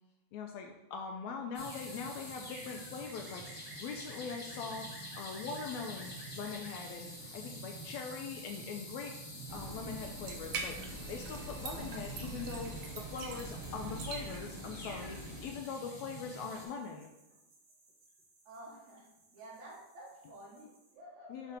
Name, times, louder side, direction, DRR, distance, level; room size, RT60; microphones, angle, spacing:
voice 1, 0.3-9.1 9.5-10.8 11.1-17.1 21.3-21.6, left 5 dB, 80° left, 3 dB, 1.7 m, -42 dB
sound 1, 1.5-16.6, right 1 dB, 30° left, 1.5 m, -46 dB
sound 2, 1.6-20.9, right 2 dB, 50° right, 1.5 m, -64 dB
sound 3, 9.5-15.5, right 2 dB, 85° right, 1.2 m, -43 dB
voice 2, 18.4-21.6, right 1 dB, 70° right, -4 dB, 2.8 m, -51 dB
7.1 x 3.2 x 5.1 m, 0.96 s
omnidirectional pair, 3.6 m